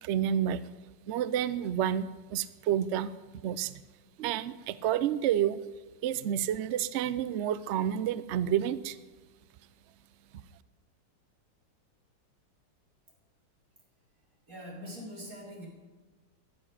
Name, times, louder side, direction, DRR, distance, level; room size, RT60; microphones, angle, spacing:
voice 1, 0.0-0.6 1.1-3.1 3.4-3.8 4.2-5.6 6.0-9.0, right 10 dB, 85° right, 15 dB, 0.6 m, -29 dB
voice 2, 14.5-15.7, equal, 50° right, -3 dB, 4.6 m, -43 dB
11.5 x 11.0 x 9.6 m, 1.3 s
omnidirectional pair, 1.9 m